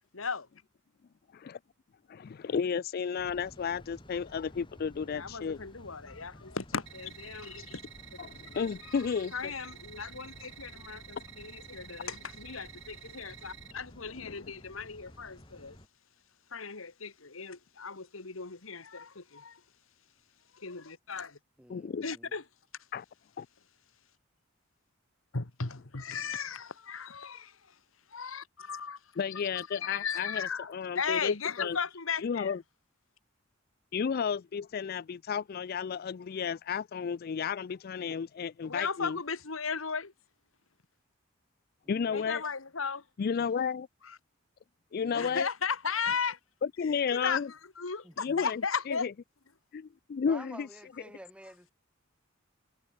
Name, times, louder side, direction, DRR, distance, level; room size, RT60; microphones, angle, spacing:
voice 1, 0.1-0.5 5.0-7.8 8.5-9.0 9.3-15.8 16.5-19.6 20.5-21.4 22.0-22.4 25.3-27.7 28.1-29.0 29.6-32.5 38.6-40.1 42.1-43.0 44.0-44.2 45.1-46.4 46.8-49.1, left 5 dB, 80° left, 1.7 m, -36 dB
voice 2, 2.1-5.6 8.2-9.5 11.2-11.3 14.2-14.4 21.7-22.0 22.9-23.0 23.4-23.5 29.2-31.8 32.2-32.6 33.9-39.2 41.9-42.4 43.2-43.9 44.9-45.5 46.8-47.5 48.2-48.6 48.9-49.1 49.7-50.7, left 6 dB, 50° left, 0.4 m, -33 dB
sound 1, 3.2-15.9, equal, 25° left, 6.1 m, -53 dB
sound 2, 6.9-13.7, right 10 dB, 65° right, 7.3 m, -51 dB
voice 3, 21.6-22.3 41.8-42.3 43.4-43.5 45.0-45.4 48.0-48.5 50.2-51.7, right 1 dB, 5° right, 3.4 m, -50 dB
head